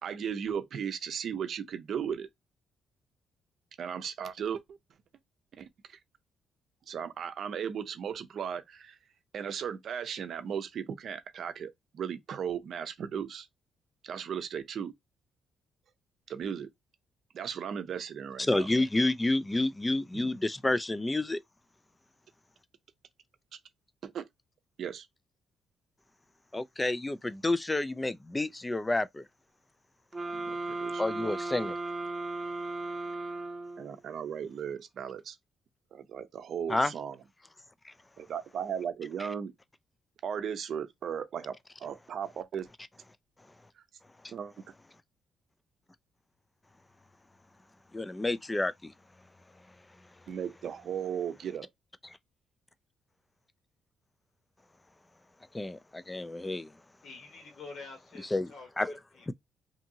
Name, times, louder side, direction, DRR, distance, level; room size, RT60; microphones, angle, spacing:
voice 1, 0.0-2.3 3.8-4.8 5.6-6.0 6.9-9.0 9.3-13.5 14.0-14.9 16.3-16.7 17.3-18.7 20.1-20.2 24.0-24.3 24.8-25.1 30.3-31.0 33.8-35.4 35.9-37.2 38.2-39.5 40.2-42.7 44.3-44.5 50.3-51.7, right 8 dB, 60° right, 0.5 m, -36 dB
voice 2, 18.5-21.4 26.5-29.2 31.0-31.8 36.7-36.9 37.8-37.9 44.2-44.3 47.9-48.9 55.5-56.7 58.3-58.5 58.8-59.0 59.3-59.4, left 2 dB, 15° left, 0.3 m, -29 dB
sound 1, 30.1-34.0, right 2 dB, 15° right, 0.8 m, -36 dB
voice 3, 57.0-58.7 59.1-59.3, left 4 dB, 65° left, 1.5 m, -47 dB
2.7 x 2.6 x 2.6 m
cardioid pair, 90°, 0 cm